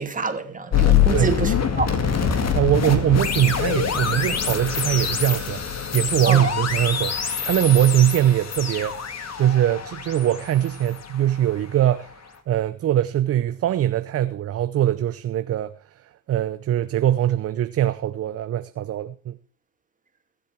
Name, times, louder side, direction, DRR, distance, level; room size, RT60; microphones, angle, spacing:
voice 1, 0.0-1.9 2.3-2.4 6.2-6.5, right 4 dB, 20° right, 2.7 m, -27 dB
sound 1, 0.7-11.7, left 7 dB, 35° left, 2.2 m, -24 dB
voice 2, 2.5-5.6 5.9-9.1 9.4-12.2 12.5-15.7 16.3-19.4, right 12 dB, 35° right, 0.7 m, -22 dB
21.5 x 7.8 x 4.6 m
hypercardioid pair, 70°, 42 cm